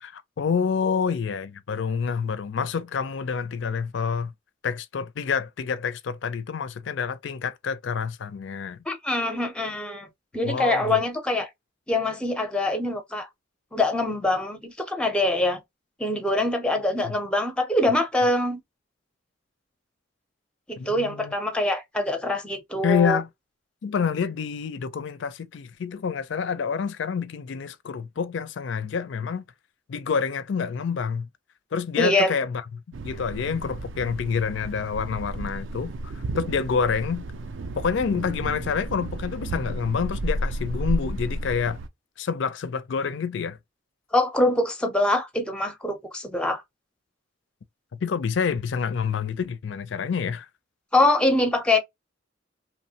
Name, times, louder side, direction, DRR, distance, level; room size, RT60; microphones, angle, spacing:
voice 1, 0.0-4.3 4.6-8.8 10.4-11.0 20.8-21.3 22.8-23.3 23.8-29.4 29.9-31.3 31.7-32.6 33.0-37.2 37.8-41.8 42.2-43.6 48.0-50.5, left 6 dB, 65° left, 0.4 m, -27 dB
voice 2, 8.9-10.1 10.3-11.5 11.9-13.3 13.7-15.6 16.0-18.6 20.7-23.2 32.0-32.3 44.1-46.6 50.9-51.8, left 2 dB, 5° left, 0.5 m, -24 dB
Thunder, 32.9-41.9, right 2 dB, 70° right, 0.4 m, -33 dB
3.0 x 2.1 x 2.7 m
head